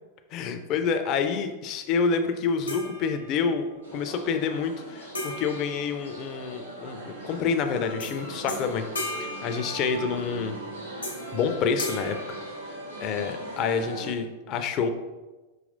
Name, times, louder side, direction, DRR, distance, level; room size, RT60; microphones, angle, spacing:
voice 1, 0.3-3.7 3.9-8.8 9.2-10.5 11.3-12.2 13.0-14.9, left 5 dB, 40° left, 8 dB, 0.4 m, -28 dB
sound 1, 2.7-3.7 5.1-6.7 8.0-8.2 8.5-10.3 11.0-11.4 11.8-13.2, left 1 dB, 80° left, 0.8 m, -37 dB
sound 2, 3.8-14.1, right 1 dB, 80° right, 1.0 m, -39 dB
4.9 x 2.9 x 2.5 m, 1.2 s
figure-of-eight pair, 90°, 0 cm